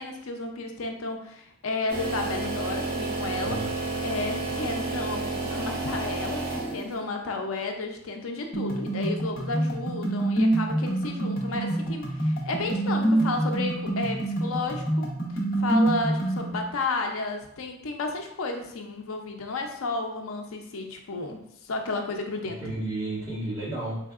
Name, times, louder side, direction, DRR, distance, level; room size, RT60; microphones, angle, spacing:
voice 1, 0.0-3.6 4.0-15.1 15.6-22.7, left 3 dB, 90° left, 4 dB, 0.5 m, -32 dB
sound 1, 1.9-7.0, right 3 dB, 50° right, 1.4 m, -31 dB
voice 2, 3.3-3.7 22.4-24.1, right 2 dB, 20° right, -9 dB, 1.3 m, -32 dB
sound 2, 8.5-16.5, right 1 dB, 45° left, 1.0 m, -26 dB
4.5 x 3.4 x 2.4 m, 0.77 s
head